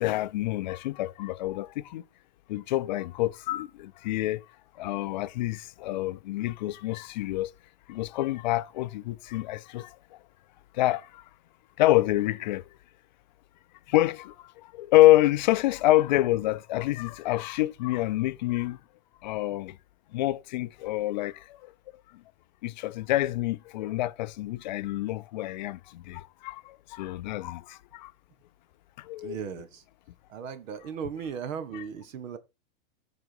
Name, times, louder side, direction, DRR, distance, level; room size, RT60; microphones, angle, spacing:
voice 1, 0.0-2.0 2.5-4.4 4.8-7.5 7.9-10.0 10.7-11.2 11.8-12.6 13.9-18.8 19.2-19.8 20.1-21.7 22.6-28.1 29.0-29.4, left 16 dB, 35° left, 0.4 m, -27 dB
voice 2, 29.2-29.8 30.3-32.4, right 7 dB, 70° right, 1.5 m, -37 dB
13.0 x 4.9 x 4.7 m
supercardioid pair, 160°, 40 cm